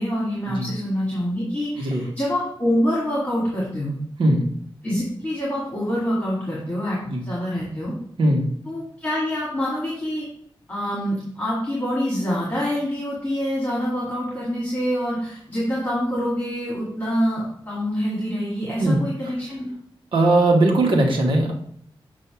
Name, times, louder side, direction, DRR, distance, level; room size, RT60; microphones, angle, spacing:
voice 1, 0.0-4.0 4.8-7.0 7.3-7.9 8.7-10.3 10.7-19.7, equal, 15° left, -7 dB, 2.0 m, -26 dB
voice 2, 20.1-21.5, right 1 dB, 70° right, 1 dB, 1.3 m, -19 dB
7.0 x 2.8 x 5.8 m, 0.65 s
wide cardioid pair, 160°, 9 cm